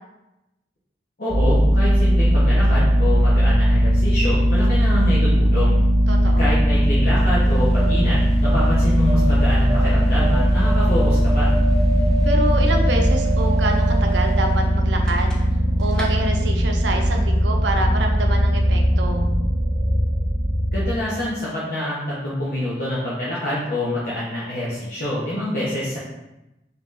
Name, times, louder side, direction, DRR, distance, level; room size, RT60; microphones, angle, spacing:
voice 1, 1.2-5.8 6.4-11.5 20.7-26.0, left 1 dB, 55° left, -9 dB, 0.9 m, -26 dB
sound 1, 1.3-20.9, equal, 35° right, 0.9 m, -18 dB
voice 2, 6.1-6.5 12.2-15.3 15.8-19.2, right 2 dB, 85° right, 3 dB, 0.6 m, -27 dB
sound 2, 7.4-15.6 15.9-16.1, right 2 dB, 5° left, 0.5 m, -31 dB
3.7 x 2.9 x 3.7 m, 0.94 s
head